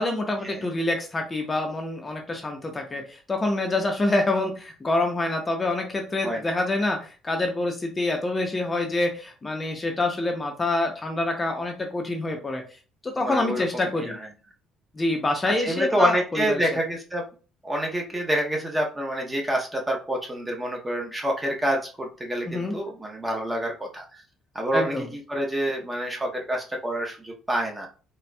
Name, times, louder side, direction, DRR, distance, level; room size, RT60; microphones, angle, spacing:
voice 1, 0.0-12.6 13.0-14.1 14.9-16.2 16.5-16.7 22.5-22.7 24.7-25.1, left 2 dB, 20° left, 3 dB, 0.7 m, -26 dB
voice 2, 13.2-14.3 15.4-17.2 17.6-24.2 24.5-27.9, right 1 dB, 15° right, 0 dB, 0.7 m, -27 dB
4.2 x 2.2 x 2.2 m, 0.36 s
cardioid pair, 115°, 0 cm